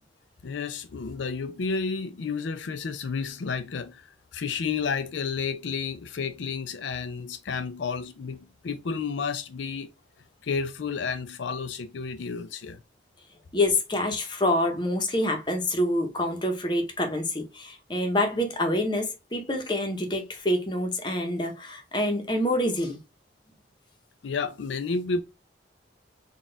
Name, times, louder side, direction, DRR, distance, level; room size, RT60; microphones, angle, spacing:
voice 1, 0.4-9.9 10.4-12.8 24.2-25.2, left 5 dB, 80° left, 0.4 m, -31 dB
voice 2, 13.5-23.0, left 1 dB, 25° left, 0.8 m, -26 dB
3.9 x 2.4 x 3.8 m
head